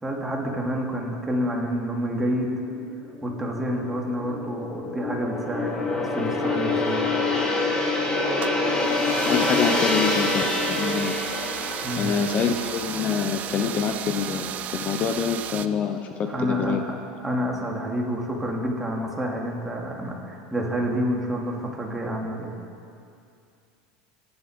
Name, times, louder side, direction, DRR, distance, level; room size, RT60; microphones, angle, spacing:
voice 1, 0.0-2.5 3.2-7.1 11.8-12.1 16.3-22.5, equal, 10° right, -2 dB, 2.8 m, -28 dB
Gong, 2.6-15.1 15.4-15.7, left 2 dB, 20° left, 2.5 m, -27 dB
sound 1, 8.4-15.7, right 10 dB, 40° right, 0.6 m, -34 dB
voice 2, 9.2-11.2 12.0-16.8, left 7 dB, 35° left, 6 dB, 0.9 m, -26 dB
23.5 x 11.0 x 5.3 m, 2.5 s
supercardioid pair, 125°, 4 cm